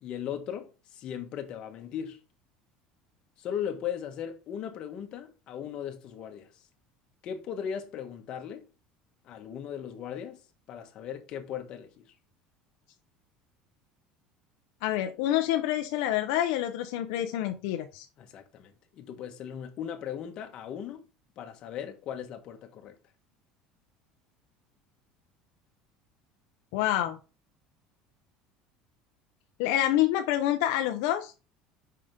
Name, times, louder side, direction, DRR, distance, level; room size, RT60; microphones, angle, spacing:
voice 1, 0.0-2.2 3.4-6.6 7.2-8.7 9.2-10.4 10.7-12.1 18.2-21.0 21.4-23.0, left 8 dB, 40° left, 1.2 m, -38 dB
voice 2, 14.8-18.1 26.7-27.2 29.6-31.3, left 13 dB, 75° left, 0.7 m, -27 dB
5.6 x 5.0 x 3.7 m
cardioid pair, 155°, 2 cm